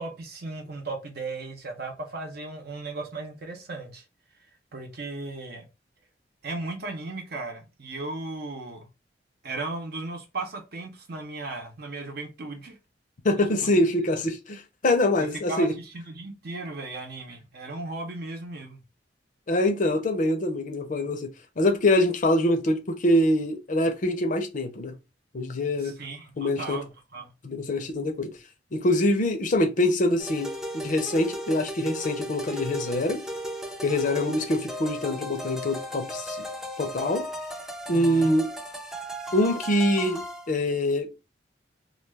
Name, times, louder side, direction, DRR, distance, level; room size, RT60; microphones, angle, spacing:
voice 1, 0.0-4.0 4.7-5.7 6.4-8.9 9.4-12.7 13.3-13.4 15.2-15.7 15.9-18.8 25.8-27.3 37.9-38.4, right 2 dB, 60° right, 0.8 m, -36 dB
voice 2, 13.2-15.7 19.5-21.3 21.6-24.9 25.3-25.9 26.4-26.8 27.4-28.3 28.7-33.2 33.8-36.4 36.8-37.3 37.9-38.5 39.3-41.1, left 1 dB, 45° left, 0.6 m, -24 dB
sound 1, 30.2-40.5, equal, 5° right, 0.5 m, -36 dB
2.3 x 2.3 x 3.3 m
head